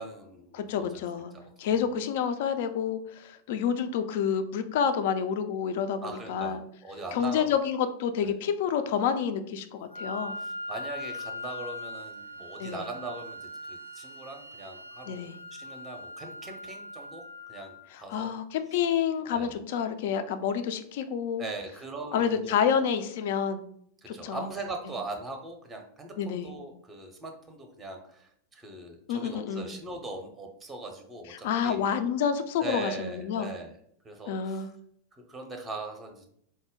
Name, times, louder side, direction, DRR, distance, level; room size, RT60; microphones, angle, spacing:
voice 1, 0.0-1.0 1.3-1.4 6.0-7.6 8.2-8.3 10.4-17.2 17.5-18.3 19.3-19.5 21.4-22.5 24.0-31.8 32.6-33.8 34.0-34.6 35.2-36.2, right 3 dB, 15° right, 4 dB, 0.6 m, -40 dB
voice 2, 0.5-1.3 1.6-6.6 7.1-10.4 12.6-12.9 15.0-15.3 17.9-21.4 22.1-23.6 24.1-24.5 26.2-26.5 29.1-29.8 31.3-33.5 34.3-34.7, left 7 dB, 50° left, 9 dB, 0.3 m, -29 dB
Wind instrument woodwind instrument, 9.9-17.9, left 1 dB, 75° right, 0.4 m, -41 dB
4.1 x 2.1 x 3.5 m, 0.68 s
figure-of-eight pair, 90°, 0 cm